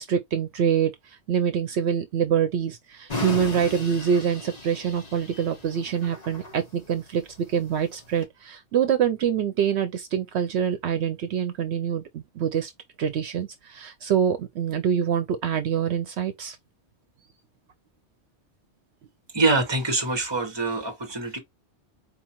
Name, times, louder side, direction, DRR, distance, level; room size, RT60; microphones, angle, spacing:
voice 1, 0.0-7.2 7.5-12.7 13.0-16.6, right 8 dB, 70° right, 0.8 m, -25 dB
sound 1, 3.1-8.2, left 2 dB, 35° left, 1.3 m, -36 dB
voice 2, 19.3-21.4, right 3 dB, 25° right, 1.1 m, -24 dB
4.3 x 2.4 x 2.9 m
omnidirectional pair, 1.2 m